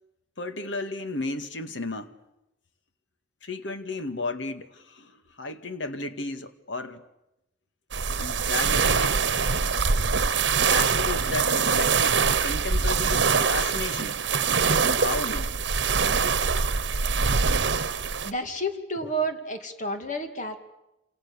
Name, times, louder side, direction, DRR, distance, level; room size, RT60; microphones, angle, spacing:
voice 1, 0.4-2.1 3.4-7.0 8.2-9.2 10.7-14.2 14.6-15.5, left 3 dB, 80° left, 9 dB, 2.0 m, -34 dB
sound 1, 7.9-18.3, right 5 dB, 70° right, 1.1 m, -24 dB
voice 2, 18.2-20.6, right 1 dB, 40° left, 6 dB, 2.5 m, -30 dB
28.0 x 28.0 x 7.0 m, 0.90 s
head